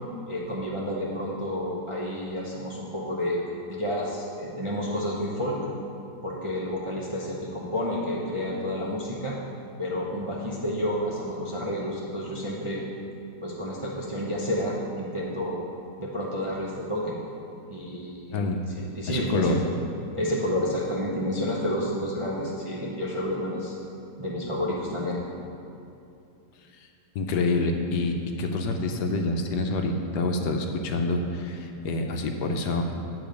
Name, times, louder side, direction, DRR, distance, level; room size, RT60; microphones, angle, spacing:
voice 1, 0.3-3.4 3.7-5.6 6.2-9.4 9.8-12.8 13.4-15.6 16.0-17.2 17.7-18.4 19.0-19.6 20.1-23.8 24.2-25.2, left 1 dB, 30° right, -6 dB, 0.5 m, -30 dB
voice 2, 18.3-19.6 26.8-26.9 27.1-32.8, left 2 dB, 75° left, 4 dB, 1.2 m, -27 dB
9.0 x 4.0 x 6.8 m, 2.7 s
omnidirectional pair, 1.9 m